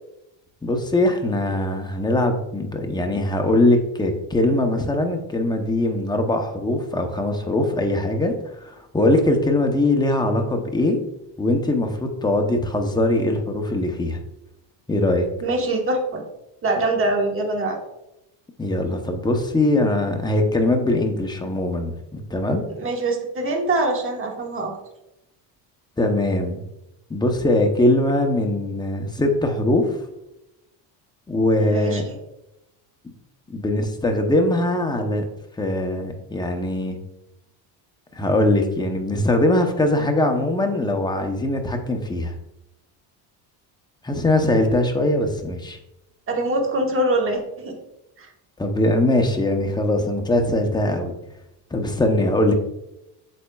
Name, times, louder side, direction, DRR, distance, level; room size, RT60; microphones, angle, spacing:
voice 1, 0.6-8.3 8.6-11.0 11.4-14.2 14.9-15.3 18.6-22.6 26.0-26.6 27.1-30.0 31.3-32.0 33.5-35.2 35.6-37.0 38.1-42.3 44.0-45.8 48.6-51.1 51.7-52.5, left 1 dB, 10° left, 4 dB, 0.7 m, -21 dB
voice 2, 15.4-16.2 16.6-17.8 22.8-24.7 31.6-32.1 46.3-47.8 48.2-48.3, right 2 dB, 30° right, 1 dB, 1.3 m, -23 dB
8.5 x 6.3 x 2.3 m, 0.90 s
cardioid pair, 140°, 45 cm